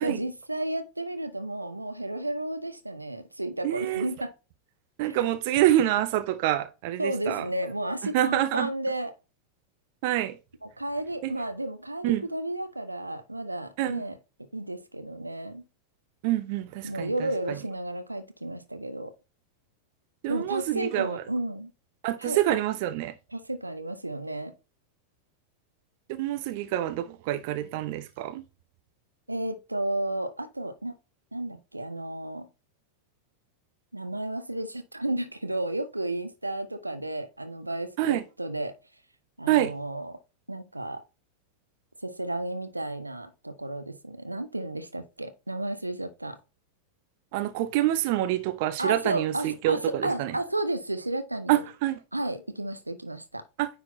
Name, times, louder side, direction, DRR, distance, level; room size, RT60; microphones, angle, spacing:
voice 1, 0.0-4.3 5.0-5.2 7.0-9.1 10.6-15.6 16.8-19.1 20.3-21.7 22.2-22.4 23.3-24.5 29.3-31.0 31.3-32.5 33.9-38.8 39.4-40.2 40.5-41.0 42.0-46.4 48.8-51.6 52.1-53.4, right 1 dB, 85° right, 0.8 m, -32 dB
voice 2, 3.6-4.1 5.0-7.5 8.1-8.7 10.0-10.4 11.2-11.3 12.0-12.2 13.8-14.0 16.2-17.6 20.2-21.2 22.0-23.1 26.1-28.4 38.0-38.2 39.5-39.7 47.3-50.3 51.5-52.0 53.6-53.8, right 13 dB, 50° right, 0.7 m, -27 dB
9.5 x 4.1 x 2.7 m
figure-of-eight pair, 90°, 0 cm